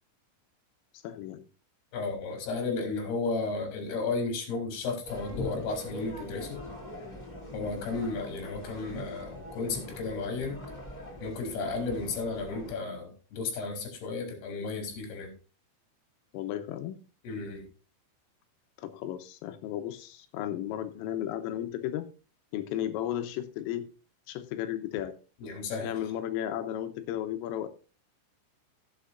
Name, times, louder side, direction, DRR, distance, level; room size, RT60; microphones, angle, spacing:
voice 1, 0.9-1.5 7.6-7.8 16.3-17.0 18.8-22.1 22.5-23.9 24.3-25.2 25.8-27.7, left 11 dB, 85° left, 9 dB, 3.6 m, -34 dB
voice 2, 1.9-6.6 7.5-10.6 11.2-15.3 17.2-17.6 25.4-25.9, left 3 dB, 55° left, 3 dB, 4.6 m, -33 dB
sound 1, 5.0-12.7, left 1 dB, 15° left, 1.8 m, -42 dB
16.5 x 7.9 x 2.6 m, 0.35 s
omnidirectional pair, 5.8 m